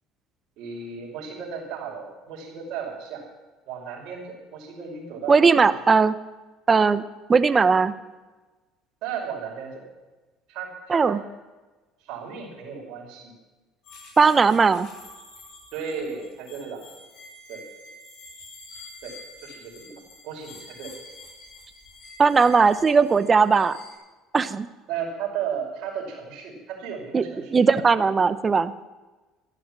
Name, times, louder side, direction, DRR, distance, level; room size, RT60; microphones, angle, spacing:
voice 1, 0.6-3.2 3.7-5.7 9.0-9.9 10.5-11.3 12.0-13.3 15.7-16.9 17.5-17.6 19.0-19.9 20.2-20.9 24.9-27.8, right 7 dB, 60° right, -1 dB, 5.5 m, -35 dB
voice 2, 5.3-6.2 6.7-7.0 7.3-7.9 10.9-11.2 14.2-14.9 22.2-23.8 24.3-24.7 27.1-27.2 27.5-28.7, right 5 dB, 30° right, 15 dB, 0.8 m, -18 dB
sound 1, 13.8-23.9, left 2 dB, 65° left, 6.7 m, -47 dB
13.5 x 11.5 x 7.5 m, 1.2 s
hypercardioid pair, 65°, 0 cm